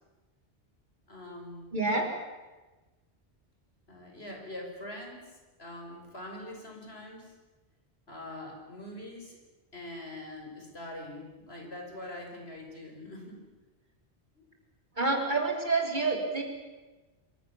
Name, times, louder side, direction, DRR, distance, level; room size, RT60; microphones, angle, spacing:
voice 1, 1.1-1.9 3.9-5.3 5.6-7.3 8.1-9.4 9.7-13.4 14.3-14.4, left 1 dB, 65° left, 2 dB, 5.7 m, -43 dB
voice 2, 1.7-2.1 15.0-16.4, right 3 dB, 45° right, 1 dB, 4.3 m, -28 dB
26.0 x 24.5 x 7.2 m, 1.2 s
omnidirectional pair, 1.1 m